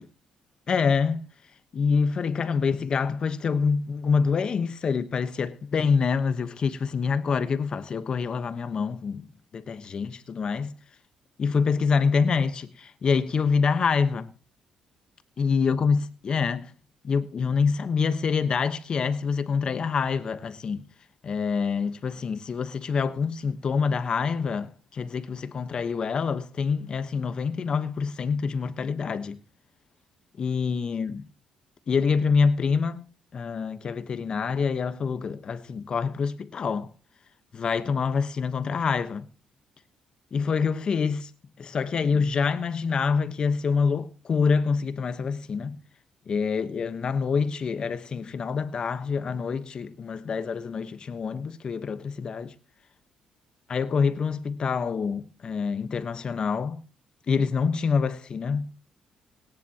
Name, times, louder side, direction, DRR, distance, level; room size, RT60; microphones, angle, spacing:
voice 1, 0.7-1.3 1.7-10.7 11.4-14.3 15.4-16.7 17.0-20.8 21.2-29.4 30.4-31.2 31.9-33.1 33.3-36.9 37.5-39.2 40.3-41.3 41.6-45.8 46.3-52.5 53.7-56.8 57.3-58.7, left 5 dB, 45° left, 1.1 m, -26 dB
21.5 x 10.5 x 2.9 m
cardioid pair, 100°, 2 cm